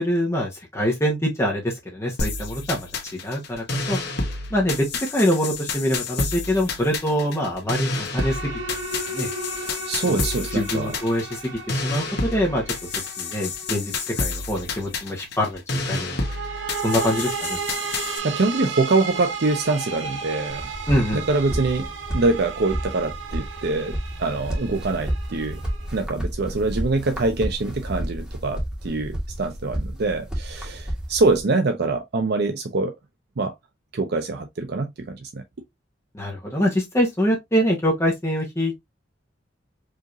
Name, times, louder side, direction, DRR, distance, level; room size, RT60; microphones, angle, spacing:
voice 1, 0.0-2.9 3.2-4.0 4.5-4.9 5.1-8.6 9.1-9.3 10.1-10.3 10.5-11.4 11.7-12.6 13.2-16.2 16.8-17.6 20.9-21.2 36.1-38.8, equal, 15° left, 1.2 m, -24 dB
sound 1, 2.2-18.2, left 3 dB, 60° left, 1.3 m, -30 dB
sound 2, 8.1-14.6 16.1-26.0, right 4 dB, 85° right, 1.1 m, -34 dB
voice 2, 9.6-10.9 18.2-20.7 21.1-25.6 25.9-32.9 33.4-33.5 33.9-35.4, right 3 dB, 60° right, 0.6 m, -24 dB
sound 3, 20.5-31.4, equal, 5° right, 1.6 m, -31 dB
4.9 x 3.0 x 2.6 m
head